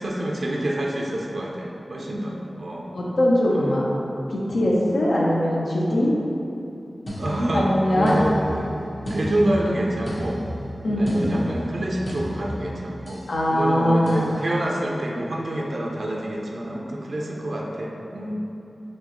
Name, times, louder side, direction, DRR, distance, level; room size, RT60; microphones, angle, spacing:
voice 1, 0.0-2.9 7.2-10.4 11.0-18.3, right 1 dB, 75° right, -2 dB, 0.4 m, -27 dB
voice 2, 2.9-3.9 4.3-6.1 7.5-8.1 10.8-11.5 13.3-14.3, equal, 85° left, -5 dB, 0.6 m, -21 dB
sound 1, 7.1-13.3 14.1-14.3, equal, 65° left, 1.1 m, -34 dB
4.4 x 3.0 x 3.0 m, 2.8 s
cardioid pair, 50°, 0 cm